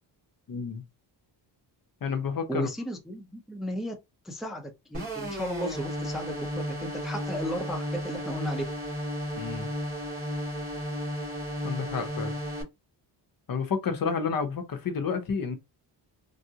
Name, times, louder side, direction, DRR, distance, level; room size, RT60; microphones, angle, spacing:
voice 1, 0.5-0.8 2.0-2.7 9.4-9.7 11.6-12.3 13.5-15.6, left 5 dB, 50° left, 0.8 m, -30 dB
voice 2, 2.5-3.9 4.2-8.6, equal, ahead, 0.5 m, -34 dB
sound 1, 4.9-12.6, equal, 30° right, 1.9 m, -34 dB
3.4 x 2.5 x 2.8 m
wide cardioid pair, 125°, 44 cm